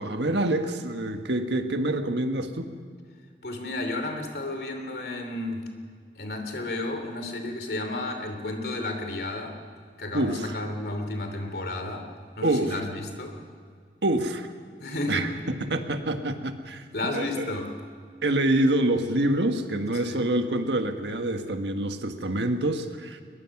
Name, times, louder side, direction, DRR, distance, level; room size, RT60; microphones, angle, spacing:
voice 1, 0.0-2.8 10.1-10.5 12.4-12.8 14.0-14.5 15.1-16.8 17.1-17.4 18.2-23.2, right 1 dB, 80° right, 6 dB, 1.5 m, -26 dB
voice 2, 3.4-5.6 6.2-9.6 10.0-12.1 12.4-13.4 14.8-15.3 16.9-17.7 20.0-20.3, left 2 dB, 60° left, 5 dB, 3.0 m, -32 dB
22.0 x 21.5 x 6.1 m, 2.1 s
head